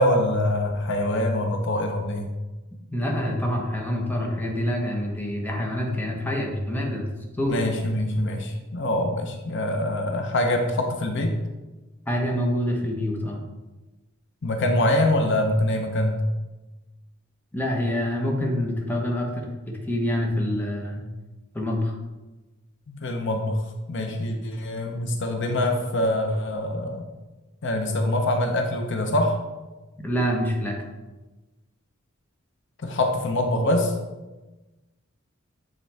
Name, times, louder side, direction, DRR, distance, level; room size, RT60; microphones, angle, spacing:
voice 1, 0.0-2.3 7.5-11.4 14.4-16.2 22.9-23.6 23.9-27.0 27.6-29.4 32.8-33.9, left 1 dB, 60° left, 4 dB, 0.7 m, -24 dB
voice 2, 2.9-7.1 7.4-7.6 12.1-13.4 17.5-21.0 21.5-21.9 30.0-30.8, equal, 10° left, -1 dB, 0.9 m, -26 dB
8.7 x 3.8 x 3.4 m, 1.1 s
head